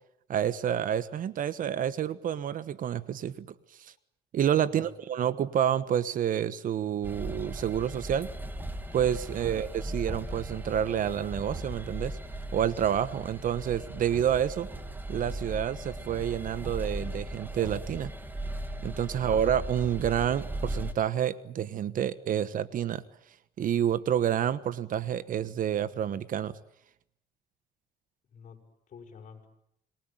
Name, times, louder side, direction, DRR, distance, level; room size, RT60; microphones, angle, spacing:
voice 1, 0.3-3.5 3.8-3.9 4.3-8.3 8.9-12.2 12.5-14.7 15.1-18.1 18.8-23.0 23.6-26.5, right 9 dB, 55° right, 16 dB, 1.3 m, -29 dB
sound 1, 7.0-20.9, right 1 dB, 10° right, 2.6 m, -37 dB
voice 2, 28.9-29.5, left 6 dB, 45° left, 3 dB, 7.0 m, -50 dB
27.5 x 22.0 x 9.1 m, 0.75 s
cardioid pair, 110°, 17 cm